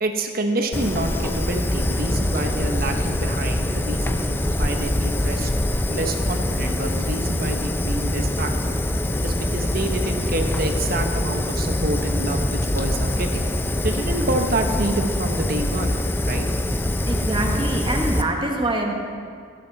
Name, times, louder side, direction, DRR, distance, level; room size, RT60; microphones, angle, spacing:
voice 1, 0.0-5.5 5.9-8.8 9.2-13.5 13.8-16.0 16.2-16.5, right 1 dB, 50° right, 4 dB, 1.1 m, -27 dB
Fire, 0.7-18.2, left 1 dB, 10° left, 0.5 m, -24 dB
voice 2, 17.0-19.0, right 1 dB, 25° right, 1 dB, 1.4 m, -25 dB
17.5 x 10.5 x 4.1 m, 2.2 s
head